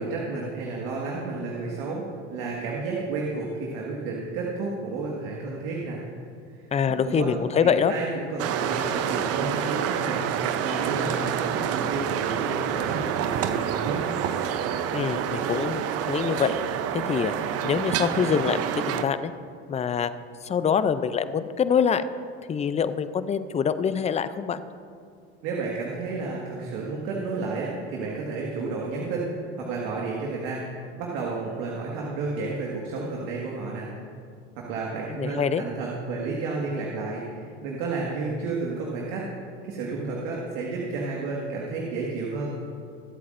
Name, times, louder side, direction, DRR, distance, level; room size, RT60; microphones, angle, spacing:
voice 1, 0.0-2.0 2.3-6.0 6.5-7.3 7.6-10.3 10.6-14.0 25.4-33.9 34.6-39.3 39.6-42.6, right 3 dB, 70° right, -3 dB, 1.9 m, -31 dB
voice 2, 6.7-7.9 14.9-15.8 16.1-16.6 16.9-19.3 19.7-20.1 20.4-22.1 22.5-24.6 35.1-35.6, left 7 dB, 20° left, 13 dB, 0.5 m, -25 dB
sound 1, 8.4-19.0, right 9 dB, 45° right, 0.7 m, -28 dB
23.5 x 8.3 x 2.6 m, 2.4 s
hypercardioid pair, 90°, 33 cm